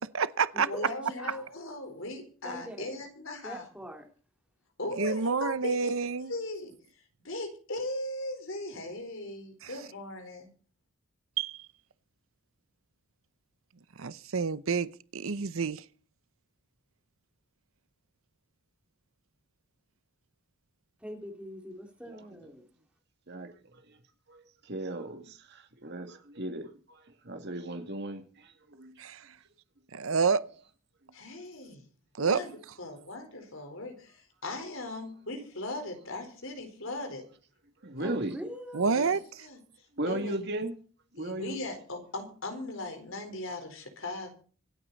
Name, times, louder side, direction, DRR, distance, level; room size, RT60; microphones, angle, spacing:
voice 1, 0.0-0.7 5.0-6.3 9.6-9.7 11.4-11.6 14.0-15.8 29.0-29.2 29.9-30.4 32.2-32.4 38.7-39.2, right 5 dB, 75° right, 0.7 m, -28 dB
voice 2, 0.7-3.7 4.8-6.7 7.2-10.5 31.1-31.8 32.2-37.2 38.0-38.2 38.8-39.6 40.1-40.3 41.2-44.3, left 2 dB, 65° left, 4.3 m, -38 dB
voice 3, 1.2-1.5 2.4-2.9 3.4-4.1 21.0-22.6 38.0-38.9, equal, 5° right, 2.7 m, -43 dB
voice 4, 24.3-28.9 37.8-38.4 40.0-40.7 41.1-41.6, right 1 dB, 55° right, 2.4 m, -36 dB
25.5 x 9.1 x 4.1 m
head